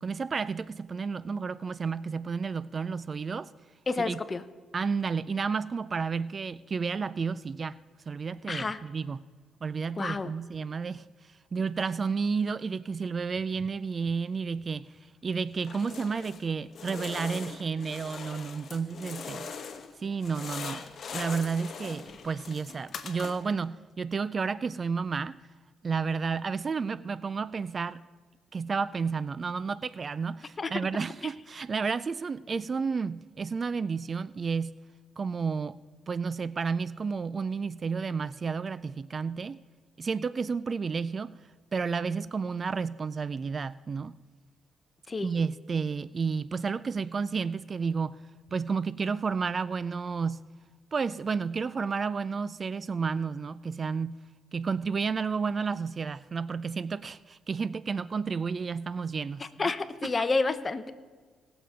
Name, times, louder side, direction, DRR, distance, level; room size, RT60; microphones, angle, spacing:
voice 1, 0.0-3.5 4.0-4.2 4.7-7.8 8.1-9.2 9.6-14.9 15.2-19.5 20.0-20.8 21.1-25.4 25.8-28.0 28.5-34.8 35.2-35.8 36.1-39.6 40.0-41.3 41.7-44.2 45.2-48.2 48.5-50.4 50.9-54.2 54.5-59.7 60.0-60.1, right 5 dB, 40° right, 0.3 m, -31 dB
voice 2, 3.9-4.4 8.5-8.8 10.0-10.3 30.6-30.7 45.1-45.3 59.6-60.9, left 3 dB, 30° left, 0.8 m, -29 dB
sound 1, 15.6-16.4 16.7-19.9 20.2-23.6, left 6 dB, 55° left, 1.1 m, -41 dB
18.5 x 6.9 x 5.1 m
cardioid pair, 90°, 0 cm